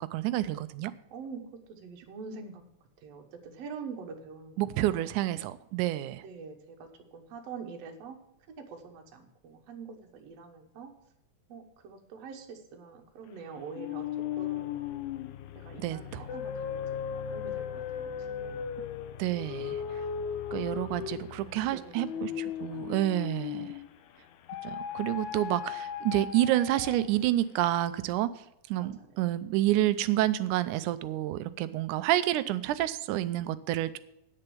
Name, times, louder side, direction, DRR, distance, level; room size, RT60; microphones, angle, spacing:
voice 1, 0.1-0.9 4.6-6.3 15.8-16.3 19.2-20.0 20.5-23.8 24.6-28.3 28.7-34.0, right 14 dB, 85° right, 14 dB, 2.1 m, -29 dB
voice 2, 1.1-1.4 1.7-2.6 3.0-5.2 6.2-8.2 8.5-10.9 11.5-14.1 14.4-14.8 15.6-18.1 18.4-18.7 20.9-21.0 21.4-23.3 28.8-29.1, right 5 dB, 60° right, 3 dB, 2.1 m, -45 dB
sound 1, 13.7-24.0 24.5-27.2, left 8 dB, 80° left, 2.1 m, -37 dB
9.4 x 6.8 x 6.9 m, 0.84 s
omnidirectional pair, 3.5 m